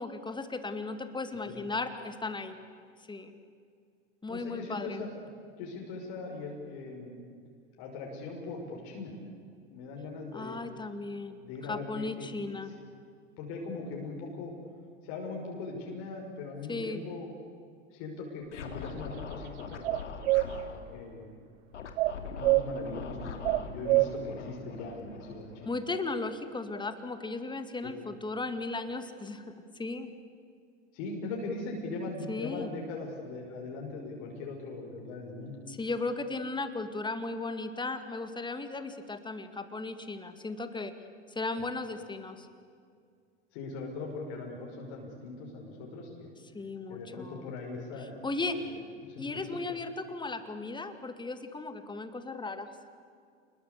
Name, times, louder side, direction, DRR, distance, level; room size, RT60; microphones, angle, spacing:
voice 1, 0.0-2.6 3.1-3.3 4.2-5.0 10.3-12.7 16.7-17.0 25.6-30.1 32.3-32.7 35.7-40.9 41.3-42.5 46.5-47.5 48.2-48.6 49.2-52.7, left 3 dB, 15° left, 9 dB, 2.3 m, -36 dB
voice 2, 4.3-5.1 5.6-7.2 7.8-9.1 9.7-10.6 11.4-12.7 13.4-14.5 15.0-17.3 17.9-20.0 20.6-21.4 22.4-25.7 27.8-27.9 30.9-35.6 43.5-46.3 46.9-48.2 48.5-48.6 49.0-49.3, left 3 dB, 60° left, -1 dB, 6.0 m, -40 dB
Scratching (performance technique), 18.5-20.8 21.7-26.0, left 5 dB, 90° left, 3.1 m, -42 dB
sound 1, 19.8-20.5 22.0-22.6 23.4-24.1, right 22 dB, 65° right, 0.8 m, -24 dB
28.0 x 21.0 x 8.3 m, 2.3 s
hypercardioid pair, 95°, 35 cm